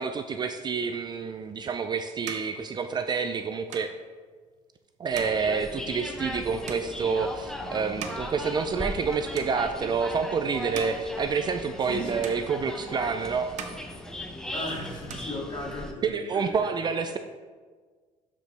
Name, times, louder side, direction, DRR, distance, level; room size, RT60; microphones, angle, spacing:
voice 1, 0.0-3.9 5.0-13.6 16.0-17.2, right 5 dB, 35° right, 7 dB, 0.4 m, -28 dB
sound 1, 1.4-9.1 9.3-10.0 10.5-12.0 12.2-13.1 13.4-14.6 14.9-16.0, right 6 dB, 65° right, 1.0 m, -44 dB
sound 2, 5.1-15.9, left 1 dB, 5° left, 0.8 m, -38 dB
voice 2, 11.8-12.2 14.5-17.1, left 1 dB, 35° left, -4 dB, 2.6 m, -38 dB
12.0 x 5.1 x 3.4 m, 1.5 s
cardioid pair, 115°, 13 cm